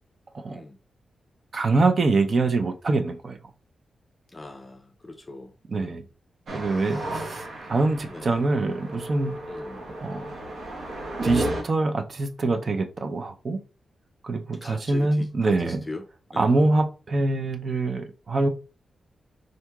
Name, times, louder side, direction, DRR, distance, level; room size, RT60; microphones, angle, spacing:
voice 1, 1.5-3.4 5.7-6.0 6.5-9.4 10.0-10.3 11.2-13.6 14.2-15.8 16.4-18.5, right 3 dB, 50° right, 0.5 m, -24 dB
voice 2, 4.3-5.5 5.8-6.1 6.6-7.3 8.1-8.4 9.5-9.8 14.6-16.0 16.3-16.6, left 2 dB, 30° left, 0.5 m, -41 dB
sound 1, 6.5-11.6, right 1 dB, 75° right, 1.0 m, -33 dB
3.8 x 2.8 x 2.3 m
cardioid pair, 70°, 0 cm